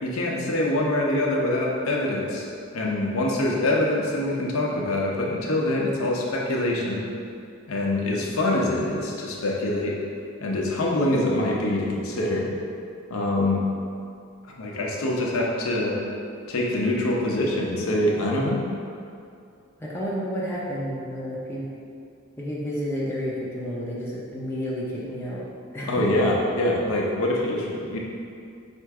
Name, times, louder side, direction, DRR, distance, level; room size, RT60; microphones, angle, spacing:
voice 1, 0.0-2.5 2.7-7.0 7.7-9.9 10.4-12.5 13.1-13.6 14.6-16.0 16.5-18.6 25.9-28.0, left 1 dB, 80° left, -3 dB, 0.7 m, -24 dB
voice 2, 19.8-21.7 22.4-25.5 25.7-26.0, equal, 10° left, -7 dB, 0.6 m, -31 dB
4.4 x 2.5 x 4.6 m, 2.5 s
head